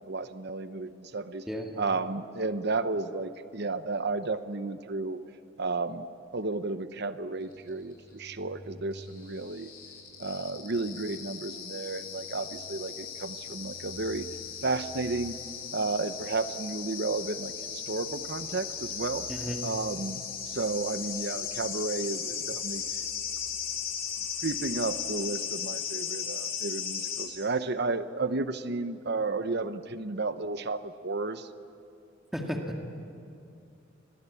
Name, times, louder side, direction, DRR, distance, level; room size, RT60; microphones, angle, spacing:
voice 1, 0.1-1.4 1.8-5.2 5.6-6.1 6.3-9.7 10.2-14.3 14.6-15.4 15.7-19.2 19.6-22.8 24.4-31.5, right 3 dB, 55° right, 11 dB, 0.9 m, -32 dB
voice 2, 1.5-1.8 19.3-19.8 32.3-32.9, equal, ahead, 1 dB, 2.1 m, -34 dB
sound 1, 7.5-27.2, left 7 dB, 50° left, 6.6 m, -37 dB
29.0 x 22.0 x 8.4 m, 2.5 s
head